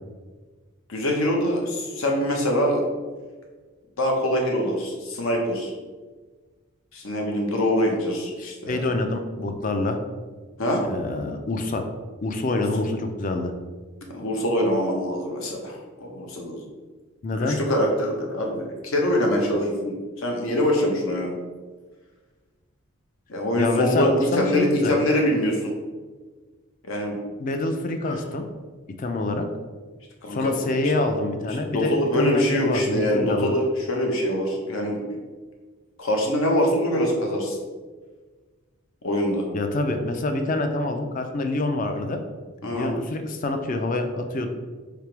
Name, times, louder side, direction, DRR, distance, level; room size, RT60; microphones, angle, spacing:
voice 1, 0.9-2.8 4.0-5.7 6.9-8.8 10.6-10.8 12.5-12.6 14.1-16.6 17.4-21.3 23.3-25.7 26.8-27.2 28.0-28.1 30.2-30.6 31.7-35.0 36.0-37.6 39.0-39.5 42.6-43.0, equal, 75° left, 1 dB, 0.9 m, -24 dB
voice 2, 8.4-10.0 10.9-11.8 12.2-13.5 17.2-17.6 23.6-24.9 27.4-28.5 29.0-29.5 30.3-33.5 39.5-42.2 42.7-44.5, left 2 dB, 40° left, 6 dB, 0.4 m, -26 dB
3.4 x 2.9 x 4.5 m, 1.4 s
head